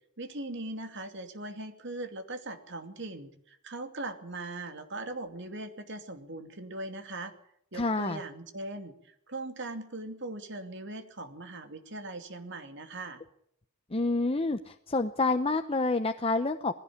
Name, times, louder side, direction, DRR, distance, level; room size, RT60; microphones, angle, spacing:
voice 1, 0.2-7.3 7.7-13.2, right 2 dB, 55° right, 7 dB, 2.6 m, -40 dB
voice 2, 7.7-8.2 13.9-16.7, left 3 dB, 25° left, 8 dB, 0.8 m, -28 dB
19.5 x 16.5 x 8.6 m, 0.72 s
head